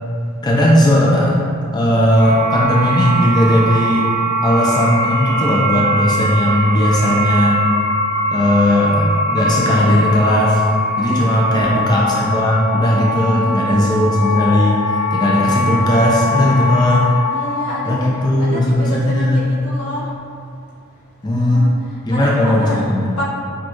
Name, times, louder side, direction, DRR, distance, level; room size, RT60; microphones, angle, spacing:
voice 1, 0.4-1.4 1.7-4.1 4.4-7.6 8.3-10.6 11.0-14.8 15.1-17.1 17.9-19.5 21.2-21.7 22.1-23.1, left 1 dB, 20° left, -3 dB, 0.4 m, -16 dB
sound 1, 2.2-18.1, equal, 60° left, 1.1 m, -21 dB
voice 2, 11.1-11.7 12.9-13.7 17.3-20.1 21.3-21.7 22.1-22.8 23.2-23.3, equal, 85° left, -7 dB, 1.2 m, -28 dB
6.2 x 2.3 x 3.0 m, 2.4 s
head